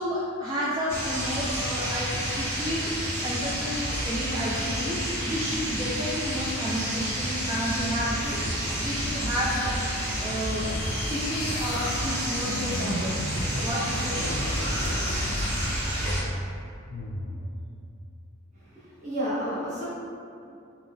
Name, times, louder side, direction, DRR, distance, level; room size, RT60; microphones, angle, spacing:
voice 1, 0.0-2.9 3.2-8.5 8.8-10.7 11.1-13.2 13.6-14.4, equal, 15° right, -7 dB, 0.3 m, -31 dB
sound 1, 0.9-16.2, equal, 60° right, 1.3 m, -30 dB
sound 2, 10.0-16.0 16.9-17.5, left 1 dB, 70° left, 0.4 m, -37 dB
voice 2, 18.5-19.9, equal, 35° right, -10 dB, 1.2 m, -31 dB
4.1 x 2.2 x 3.5 m, 2.5 s
head